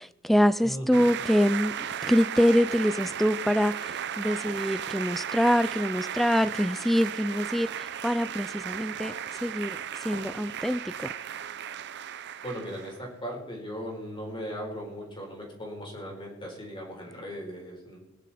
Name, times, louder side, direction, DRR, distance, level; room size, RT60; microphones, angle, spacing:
voice 1, 0.0-1.7 2.0-9.1 9.4-9.8 10.0-11.1, equal, ahead, 0.4 m, -25 dB
voice 2, 0.6-1.1 12.4-18.0, equal, 25° left, 4.1 m, -38 dB
sound 1, 0.9-13.0, right 9 dB, 55° right, 0.6 m, -35 dB
20.5 x 10.0 x 4.3 m
head